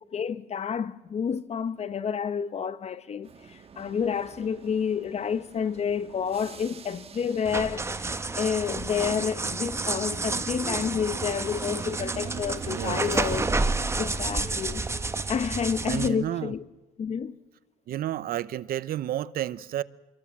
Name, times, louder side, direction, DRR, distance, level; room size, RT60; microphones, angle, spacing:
voice 1, 0.1-8.1 8.4-13.5 14.0-14.8 15.3-16.6 17.0-17.3, left 7 dB, 40° left, 1.2 m, -29 dB
sound 1, 3.2-13.7, right 6 dB, 35° right, 1.7 m, -42 dB
sound 2, 7.4-16.1, right 3 dB, 15° right, 1.5 m, -30 dB
voice 2, 12.7-13.2 15.8-16.5 17.9-19.8, right 12 dB, 60° right, 0.9 m, -31 dB
27.0 x 23.0 x 7.4 m
cardioid pair, 110°, 17 cm